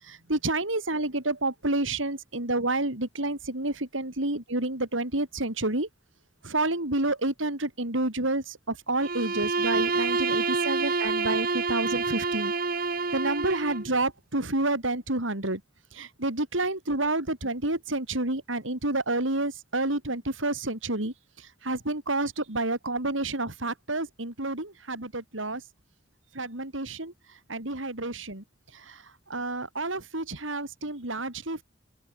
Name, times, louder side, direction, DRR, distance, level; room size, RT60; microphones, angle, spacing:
voice 1, 0.0-5.9 6.4-12.5 13.1-15.6 15.9-25.6 26.3-28.4 28.7-31.6, right 2 dB, 80° right, 4.5 m, -29 dB
Bowed string instrument, 9.0-13.9, right 4 dB, 50° right, 2.0 m, -28 dB
open air
head